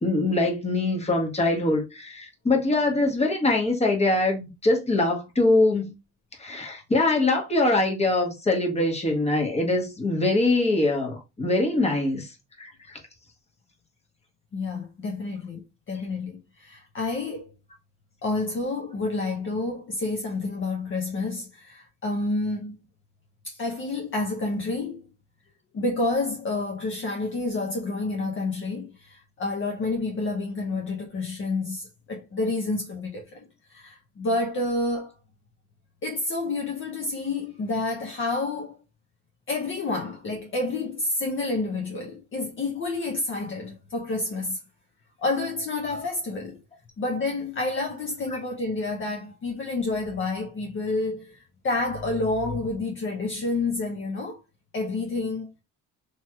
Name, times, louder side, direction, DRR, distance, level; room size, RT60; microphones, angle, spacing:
voice 1, 0.0-5.9 6.4-12.3 12.6-13.0 48.3-48.4, left 2 dB, 20° left, 1.1 m, -23 dB
voice 2, 14.5-17.5 18.2-22.8 23.4-25.0 25.7-35.1 36.0-38.8 39.5-44.6 45.2-46.6 47.0-54.4 54.7-55.5, left 2 dB, 40° left, 0.6 m, -29 dB
3.0 x 2.9 x 2.3 m
cardioid pair, 90°, 30 cm